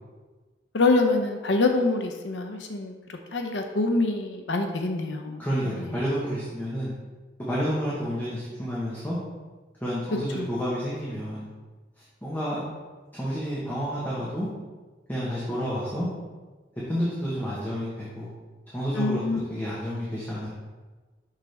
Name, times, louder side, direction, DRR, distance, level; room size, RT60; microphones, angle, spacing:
voice 1, 0.7-6.0 10.3-10.5 19.0-19.4, left 3 dB, 80° left, 4 dB, 0.7 m, -26 dB
voice 2, 5.4-6.9 7.5-9.2 9.8-11.5 12.2-12.6 13.1-14.5 15.1-16.1 16.9-18.3 18.7-20.5, equal, 10° left, -8 dB, 1.2 m, -30 dB
6.6 x 6.3 x 3.4 m, 1.3 s
head